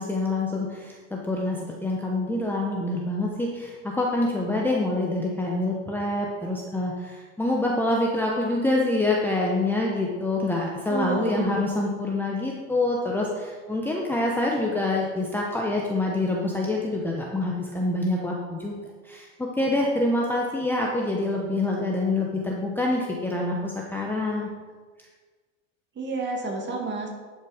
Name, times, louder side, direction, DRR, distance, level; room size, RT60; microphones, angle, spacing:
voice 1, 0.0-18.8 19.0-24.5, left 2 dB, 5° left, -2 dB, 0.9 m, -26 dB
voice 2, 10.9-11.7 26.0-27.1, right 3 dB, 30° right, 1 dB, 2.1 m, -30 dB
11.0 x 5.6 x 4.9 m, 1.5 s
supercardioid pair, 130°, 39 cm